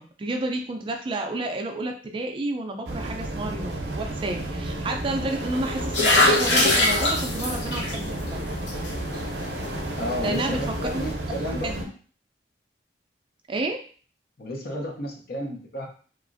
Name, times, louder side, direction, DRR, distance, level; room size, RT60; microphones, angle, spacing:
voice 1, 0.0-8.4 10.2-11.0 11.5-11.9 13.5-13.8, right 2 dB, 30° right, 4 dB, 0.3 m, -30 dB
sound 1, 2.9-11.8, right 1 dB, 75° right, 0.6 m, -32 dB
sound 2, 5.5-11.1, left 2 dB, 90° left, 0.8 m, -25 dB
voice 2, 10.0-11.9 14.4-15.9, left 1 dB, 60° left, 2 dB, 0.6 m, -32 dB
2.9 x 2.4 x 2.5 m, 0.42 s
head